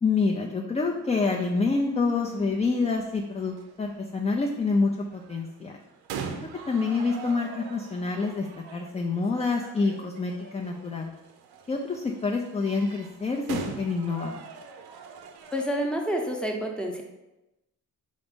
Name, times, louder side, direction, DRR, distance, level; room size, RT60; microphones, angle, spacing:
voice 1, 0.0-5.8 6.4-8.5 8.7-11.1 11.7-14.5, left 4 dB, 20° left, 1 dB, 0.3 m, -27 dB
sound 1, 0.9-15.7, right 6 dB, 80° right, 0.5 m, -43 dB
voice 2, 15.5-17.0, equal, 5° left, 1 dB, 0.7 m, -28 dB
3.9 x 2.6 x 3.5 m, 0.97 s
cardioid pair, 65°, 38 cm